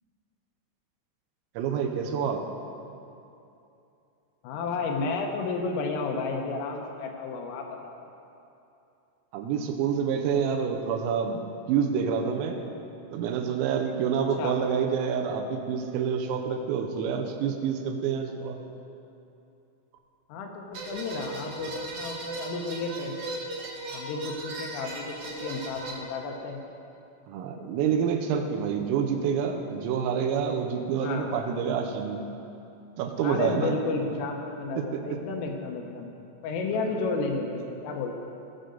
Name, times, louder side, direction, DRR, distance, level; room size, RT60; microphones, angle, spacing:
voice 1, 1.6-2.4 9.3-11.4 11.7-12.7 13.1-18.6 27.3-32.2 33.0-33.7 34.8-35.2, right 7 dB, 90° right, 4 dB, 3.5 m, -27 dB
voice 2, 4.4-8.0 14.2-14.5 20.3-23.2 23.9-26.6 31.0-31.3 33.2-36.1 36.4-38.1, left 4 dB, 80° left, 2 dB, 3.4 m, -32 dB
sound 1, 20.7-25.9, right 2 dB, 60° right, 2.5 m, -37 dB
19.0 x 6.7 x 3.8 m, 2.8 s
omnidirectional pair, 6.0 m